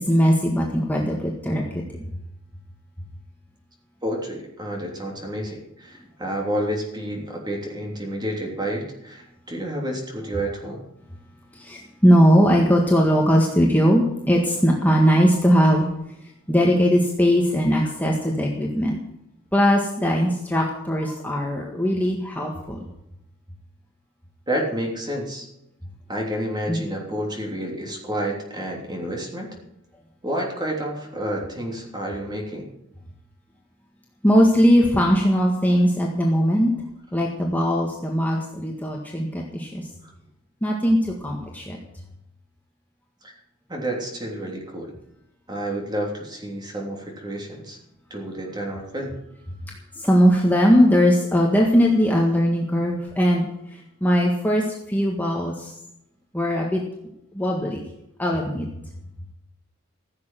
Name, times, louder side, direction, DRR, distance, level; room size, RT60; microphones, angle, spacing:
voice 1, 0.0-1.8 11.5-15.9 16.5-19.0 19.5-22.8 26.7-26.8 34.2-36.7 37.1-39.9 40.6-41.8 49.9-55.7 56.3-56.8 57.3-57.8 58.2-58.6, equal, 10° left, -1 dB, 1.7 m, -20 dB
voice 2, 4.0-10.8 24.5-25.5 26.1-29.5 30.2-32.7 40.0-40.1 43.2-43.3 43.7-44.9 45.5-47.8 48.1-49.2, right 1 dB, 20° right, 0 dB, 3.3 m, -29 dB
15.5 x 7.7 x 7.7 m, 0.84 s
head